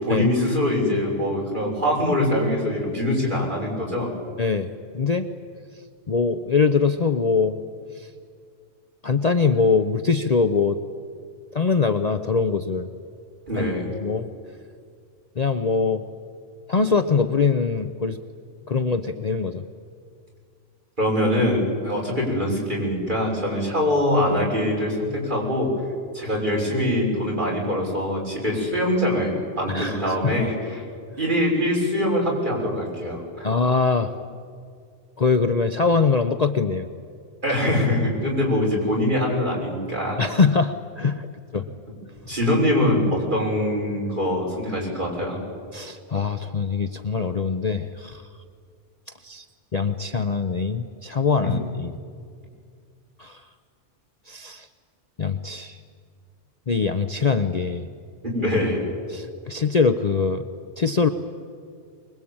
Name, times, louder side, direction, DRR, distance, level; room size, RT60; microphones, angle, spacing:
voice 1, 0.0-4.1 13.5-13.9 21.0-25.7 26.1-30.8 31.2-33.5 37.4-40.2 42.3-45.4 51.4-51.6 58.2-58.8, left 1 dB, 40° right, -3 dB, 6.4 m, -23 dB
voice 2, 4.4-5.3 6.1-7.6 7.9-8.1 9.0-10.8 11.5-12.9 13.6-13.7 14.0-14.3 15.4-16.0 16.7-18.2 18.7-19.6 29.7-30.5 33.4-34.1 35.2-36.9 40.2-41.3 41.5-41.6 45.7-48.2 49.2-49.4 49.7-51.9 53.2-53.4 54.3-54.7 55.2-55.8 56.7-57.9 59.1-60.5 60.8-61.1, left 5 dB, 40° left, 8 dB, 0.8 m, -23 dB
24.5 x 21.0 x 8.8 m, 2.2 s
omnidirectional pair, 1.2 m